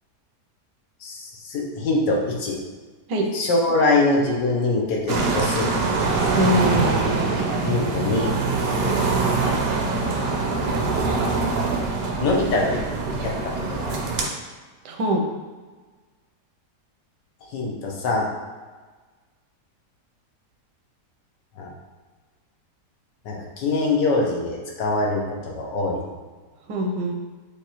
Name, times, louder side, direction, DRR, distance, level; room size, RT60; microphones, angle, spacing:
voice 1, 1.0-2.6 3.3-5.7 7.7-8.3 9.5-9.6 12.2-12.8 13.2-13.3 13.7-14.0 17.5-18.3 21.6-21.7 23.2-26.0, left 2 dB, 85° left, -1 dB, 1.5 m, -23 dB
sound 1, 5.1-14.3, right 3 dB, 65° right, 0.6 m, -24 dB
voice 2, 6.3-7.4 14.8-15.2 26.7-27.1, equal, 90° right, 2 dB, 1.3 m, -23 dB
6.6 x 2.5 x 3.0 m, 1.4 s
omnidirectional pair, 1.8 m